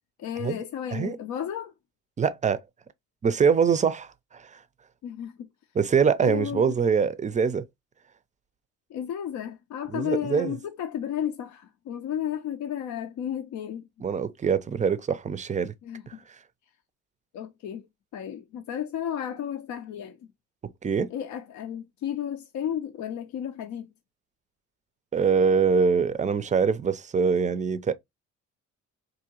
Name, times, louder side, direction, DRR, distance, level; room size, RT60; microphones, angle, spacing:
voice 1, 0.2-1.7 5.0-5.5 6.2-6.8 8.9-13.9 15.8-16.2 17.3-20.3 21.1-23.9, left 9 dB, 70° left, 0.5 m, -33 dB
voice 2, 2.2-2.6 3.2-4.5 5.8-7.7 9.9-10.5 14.0-15.7 16.1-16.2 20.6-21.1 25.1-27.9, right 6 dB, 25° right, 0.4 m, -24 dB
3.6 x 2.7 x 2.8 m
cardioid pair, 90°, 30 cm